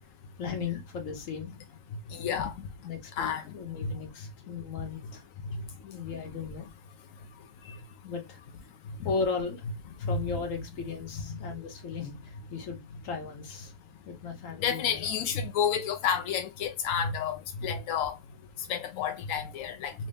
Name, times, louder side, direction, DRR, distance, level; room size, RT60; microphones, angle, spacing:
voice 1, 0.4-1.5 2.8-5.2 5.8-6.7 8.0-8.4 9.0-9.6 10.1-12.1 12.5-13.7 14.1-15.2, left 5 dB, 55° left, 1.2 m, -36 dB
voice 2, 2.1-2.5 3.2-3.4 3.8-3.9 10.0-10.2 11.3-11.4 14.6-18.2 18.7-19.9, left 7 dB, 75° left, 0.7 m, -30 dB
3.1 x 2.8 x 3.3 m
omnidirectional pair, 1.9 m